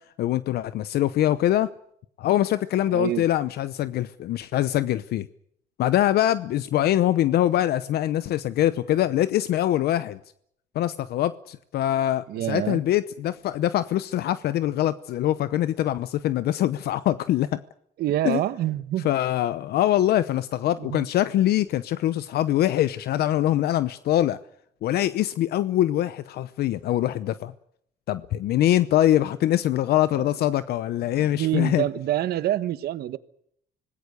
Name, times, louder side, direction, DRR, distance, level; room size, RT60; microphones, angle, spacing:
voice 1, 0.2-1.7 2.2-5.3 5.8-10.2 10.7-17.6 18.2-18.4 19.0-24.4 24.8-27.5 28.1-31.8, left 13 dB, 70° left, 0.8 m, -23 dB
voice 2, 2.9-3.2 12.3-12.8 18.0-19.1 20.8-21.1 30.1-30.3 31.2-33.2, right 13 dB, 70° right, 1.3 m, -27 dB
26.0 x 19.5 x 6.7 m
cardioid pair, 110°, 17 cm